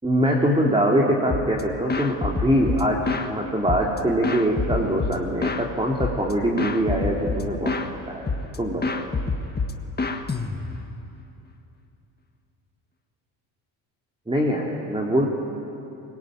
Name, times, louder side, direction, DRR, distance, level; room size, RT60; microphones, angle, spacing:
voice 1, 0.0-3.0 3.3-8.3 8.6-9.0 14.3-15.3, equal, 10° right, -1 dB, 3.1 m, -23 dB
sound 1, 1.3-1.6 1.9-3.3 3.7-5.7 6.0-6.3 6.6-7.9 8.3-8.6 8.8-10.9, left 3 dB, 20° left, 1.8 m, -27 dB
23.5 x 22.0 x 9.2 m, 2.8 s
supercardioid pair, 90°, 49 cm